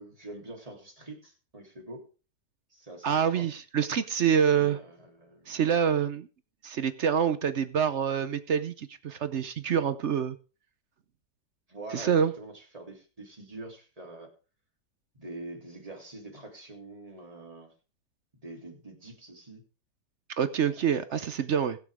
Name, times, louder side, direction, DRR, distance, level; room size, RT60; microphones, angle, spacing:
voice 1, 0.0-2.1 2.7-3.5 4.5-5.5 11.7-14.3 15.1-17.7 18.4-19.6 21.1-21.3, right 2 dB, 20° right, 3.2 m, -45 dB
voice 2, 3.0-4.8 5.5-6.3 6.6-10.4 11.9-12.3 20.4-21.8, right 8 dB, 55° right, 0.8 m, -26 dB
21.0 x 7.1 x 3.5 m
omnidirectional pair, 1.8 m